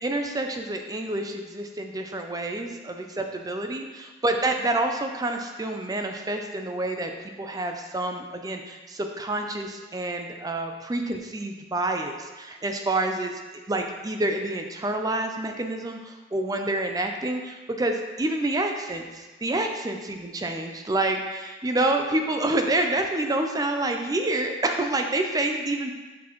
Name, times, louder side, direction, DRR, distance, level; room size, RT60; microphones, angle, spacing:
voice 1, 0.0-7.1 7.4-13.3 13.7-25.9, right 2 dB, 20° right, 4 dB, 0.4 m, -28 dB
6.1 x 5.9 x 3.1 m, 1.2 s
head